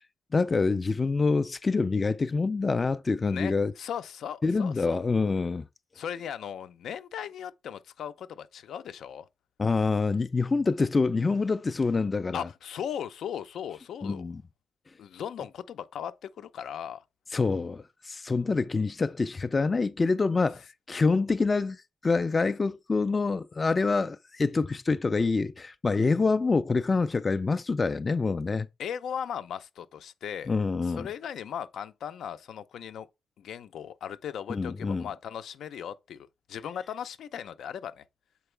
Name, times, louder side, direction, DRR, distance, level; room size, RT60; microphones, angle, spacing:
voice 1, 0.3-3.7 4.4-5.7 9.6-12.4 14.0-14.4 17.3-28.7 30.5-31.1 34.5-35.1, left 4 dB, 25° left, 0.3 m, -26 dB
voice 2, 3.2-5.0 5.9-9.3 12.3-14.3 15.0-17.0 28.8-30.5 30.8-33.1 33.4-38.0, left 9 dB, 85° left, 0.5 m, -37 dB
6.9 x 4.6 x 3.2 m
wide cardioid pair, 165°, 0 cm